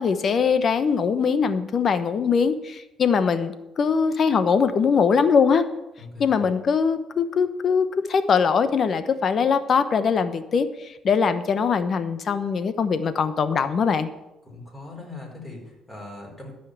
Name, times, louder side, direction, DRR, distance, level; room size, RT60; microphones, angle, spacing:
voice 1, 0.0-5.6 6.2-14.1, left 6 dB, 45° left, 11 dB, 1.0 m, -22 dB
voice 2, 6.0-6.5 14.4-16.5, left 2 dB, 15° left, -1 dB, 4.8 m, -40 dB
13.5 x 5.6 x 8.1 m, 0.94 s
cardioid pair, 100°, 0 cm